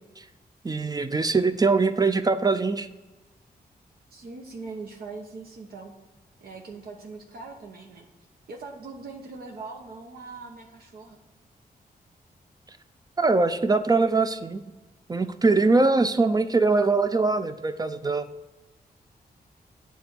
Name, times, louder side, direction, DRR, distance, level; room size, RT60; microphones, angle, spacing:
voice 1, 0.6-2.9 13.2-14.6 15.1-18.3, right 3 dB, 25° right, 10 dB, 0.5 m, -22 dB
voice 2, 4.1-5.9 6.4-8.1 8.5-11.2, right 3 dB, 70° right, 0 dB, 1.0 m, -41 dB
9.2 x 3.4 x 6.3 m, 1.1 s
wide cardioid pair, 100°, 16 cm